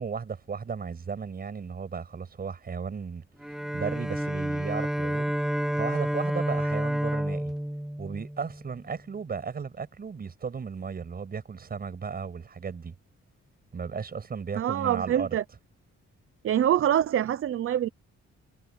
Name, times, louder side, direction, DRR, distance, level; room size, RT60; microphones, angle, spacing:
voice 1, 0.0-3.2 3.7-7.5 8.0-12.9 13.7-15.4, right 6 dB, 30° right, 6.5 m, -35 dB
Bowed string instrument, 3.4-8.9, equal, ahead, 0.3 m, -30 dB
voice 2, 14.6-15.4 16.4-17.9, right 10 dB, 45° right, 0.7 m, -25 dB
wide cardioid pair, 175°, 29 cm